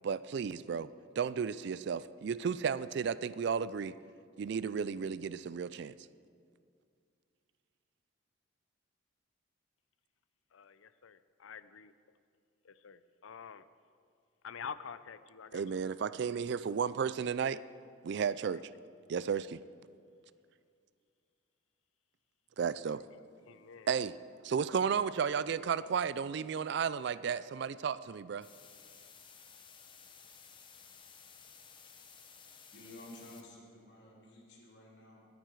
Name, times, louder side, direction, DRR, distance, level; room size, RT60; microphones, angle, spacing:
voice 1, 0.0-0.9 1.2-4.0 4.4-5.9 15.5-17.6 18.0-18.7 19.1-19.6 22.6-23.0 23.9-24.2 24.4-28.5, right 6 dB, 55° right, 16 dB, 0.3 m, -33 dB
voice 2, 10.5-11.9 12.6-13.7 14.4-16.1 16.7-16.8 23.5-23.9, left 6 dB, 80° left, 14 dB, 0.5 m, -48 dB
sound 1, 28.4-33.4, left 6 dB, 25° left, 0.9 m, -56 dB
voice 3, 32.7-35.3, left 1 dB, 60° left, -3 dB, 3.1 m, -53 dB
22.0 x 9.2 x 4.7 m, 2.3 s
head